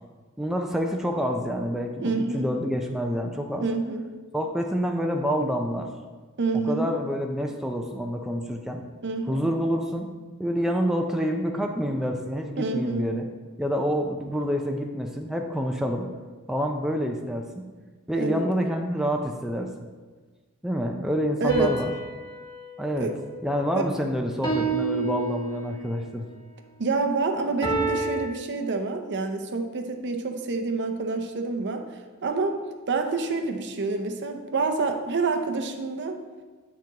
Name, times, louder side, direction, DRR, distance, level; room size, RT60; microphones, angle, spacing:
voice 1, 0.4-3.6 4.3-5.9 6.6-8.8 9.3-10.1 10.4-13.2 13.6-16.1 16.5-17.6 18.1-19.7 20.6-21.9 22.8-23.1 23.4-26.3, equal, ahead, 2 dB, 0.4 m, -27 dB
voice 2, 2.0-2.5 3.6-4.0 6.4-6.9 9.0-9.4 12.6-13.1 18.1-18.4 21.4-21.7 23.0-23.1 26.8-32.6 32.9-36.2, right 3 dB, 55° right, 5 dB, 0.6 m, -27 dB
sound 1, 21.5-23.9 24.4-26.0 27.6-28.3, right 3 dB, 20° left, 1.1 m, -30 dB
8.4 x 6.0 x 2.9 m, 1.3 s
head